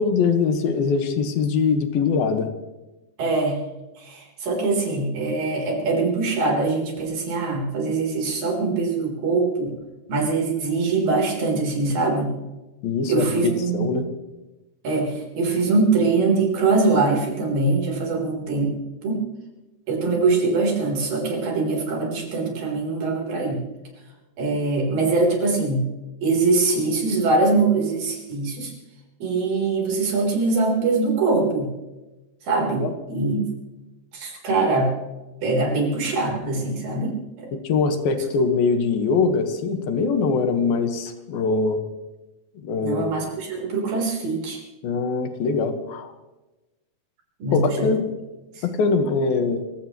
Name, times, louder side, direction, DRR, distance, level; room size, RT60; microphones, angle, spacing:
voice 1, 0.0-2.5 12.8-14.1 32.8-32.9 37.6-41.8 42.6-43.1 44.8-46.1 47.5-48.1 48.6-49.6, left 4 dB, 85° left, 7 dB, 3.2 m, -22 dB
voice 2, 3.2-3.6 4.0-9.7 10.1-12.3 13.1-14.0 14.8-18.7 19.0-19.2 19.9-23.6 24.4-25.9 26.2-28.7 29.2-31.7 32.5-33.4 34.1-34.9 35.4-37.5 42.8-44.6 47.4-47.9 48.6-48.7, right 3 dB, 70° right, 0 dB, 5.6 m, -23 dB
27.0 x 16.0 x 3.1 m, 1.1 s
omnidirectional pair, 4.1 m